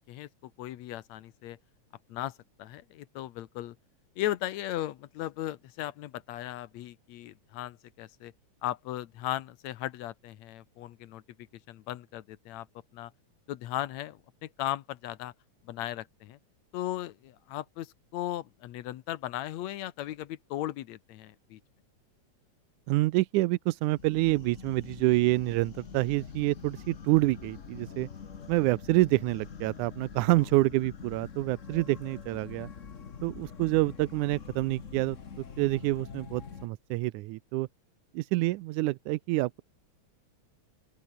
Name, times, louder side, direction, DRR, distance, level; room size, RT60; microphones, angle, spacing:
voice 1, 0.0-1.6 2.1-2.3 2.6-3.8 4.2-8.3 8.6-11.2 11.7-12.7 12.9-13.1 13.5-15.3 15.6-16.4 16.7-21.6 30.3-30.4, left 13 dB, 75° left, 2.2 m, -37 dB
voice 2, 22.9-28.1 28.5-32.7 33.2-37.7 38.1-39.6, right 19 dB, 90° right, 2.1 m, -27 dB
sound 1, 23.9-36.7, left 6 dB, 45° left, 1.0 m, -45 dB
open air
omnidirectional pair, 3.4 m